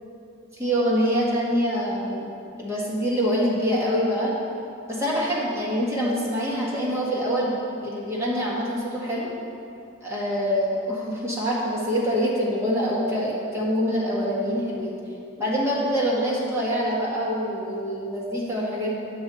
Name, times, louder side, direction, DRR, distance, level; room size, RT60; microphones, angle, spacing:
voice 1, 0.5-2.3 2.6-4.3 4.9-9.3 10.0-14.9 15.4-18.9, equal, 15° right, -6 dB, 1.4 m, -25 dB
7.8 x 6.1 x 4.0 m, 2.6 s
head